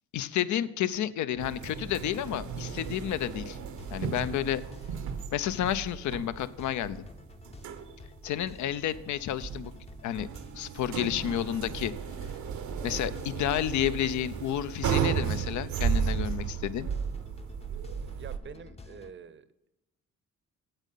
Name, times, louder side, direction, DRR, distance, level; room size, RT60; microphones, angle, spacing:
voice 1, 0.1-3.6 3.9-4.6 5.3-7.0 8.2-9.7 10.0-10.3 10.5-11.9 12.8-16.9, left 11 dB, 70° left, 15 dB, 0.7 m, -31 dB
sound 1, 1.3-19.1, left 3 dB, 20° left, 0.7 m, -50 dB
sound 2, 1.4-18.4, right 7 dB, 75° right, 1.0 m, -34 dB
voice 2, 18.2-19.5, right 7 dB, 40° right, 14 dB, 0.7 m, -46 dB
8.9 x 8.3 x 5.6 m, 0.95 s
cardioid pair, 90°, 30 cm